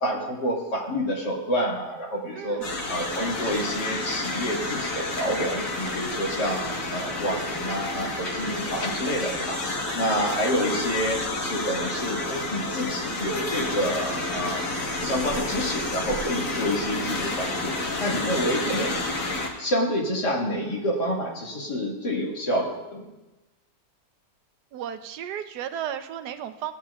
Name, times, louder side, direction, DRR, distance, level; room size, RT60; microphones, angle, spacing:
voice 1, 0.0-14.7 15.0-17.7 18.0-18.9 19.6-23.1, equal, 75° left, -3 dB, 2.6 m, -28 dB
voice 2, 2.3-2.7 18.4-18.8 24.7-26.7, right 9 dB, 75° right, 9 dB, 1.1 m, -34 dB
sound 1, 2.6-19.5, left 2 dB, 55° left, 1.6 m, -30 dB
16.0 x 8.7 x 2.3 m, 1.1 s
omnidirectional pair, 1.8 m